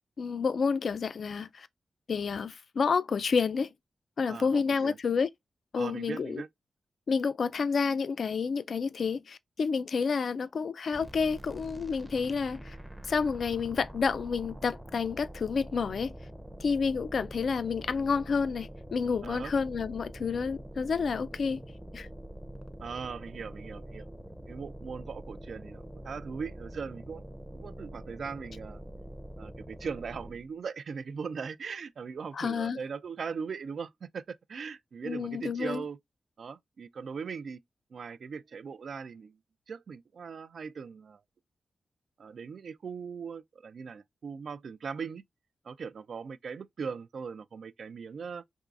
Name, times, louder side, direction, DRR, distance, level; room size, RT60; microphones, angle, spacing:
voice 1, 0.2-1.7 2.1-3.7 4.2-5.3 5.7-6.4 7.1-12.8 13.1-16.1 16.6-21.6 21.9-22.1 32.3-32.8 35.0-35.8, left 5 dB, 70° left, 0.3 m, -29 dB
voice 2, 4.3-5.0 5.8-6.5 19.2-19.5 22.8-24.0 24.5-27.2 27.5-28.8 29.4-36.0 36.4-37.6 37.9-39.4 39.7-41.2 42.2-45.2 45.6-48.4, right 6 dB, 70° right, 0.3 m, -39 dB
sound 1, 10.9-30.5, right 1 dB, 5° right, 0.5 m, -45 dB
3.5 x 3.0 x 2.4 m
cardioid pair, 60°, 0 cm